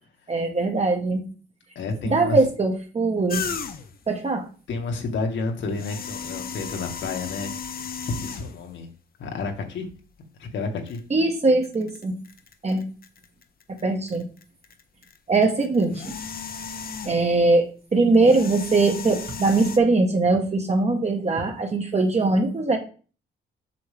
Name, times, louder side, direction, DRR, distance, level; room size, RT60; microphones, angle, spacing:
voice 1, 0.3-1.2 2.0-3.4 4.1-4.5 11.1-12.2 12.6-12.8 13.7-14.3 15.3-16.1 17.0-22.8, right 3 dB, 35° right, 3 dB, 1.6 m, -21 dB
voice 2, 1.8-2.4 4.7-7.5 8.0-8.9 9.2-9.9 10.4-11.0, left 3 dB, 70° left, 3 dB, 2.2 m, -30 dB
sound 1, 3.3-4.0 5.6-8.7 9.5-9.6 10.9-11.0 11.5-13.8 14.1-17.4 18.1-19.8, left 6 dB, 50° left, 1.1 m, -35 dB
7.7 x 6.3 x 3.6 m, 0.38 s
cardioid pair, 90°, 20 cm